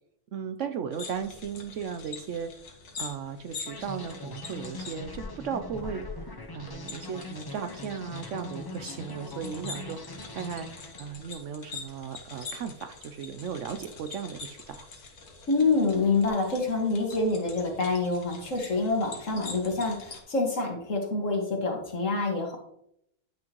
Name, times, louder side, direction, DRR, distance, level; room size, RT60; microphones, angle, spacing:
voice 1, 0.3-2.5 3.0-6.3 6.5-10.7 11.0-14.9, right 7 dB, 65° right, 8 dB, 0.8 m, -36 dB
sound 1, 0.9-20.2, left 4 dB, 80° left, 2.0 m, -44 dB
sound 2, 3.7-11.3, left 2 dB, 30° left, 0.4 m, -42 dB
voice 2, 15.5-22.6, left 3 dB, 55° left, 1 dB, 2.1 m, -27 dB
11.5 x 6.2 x 3.0 m, 0.74 s
omnidirectional pair, 1.6 m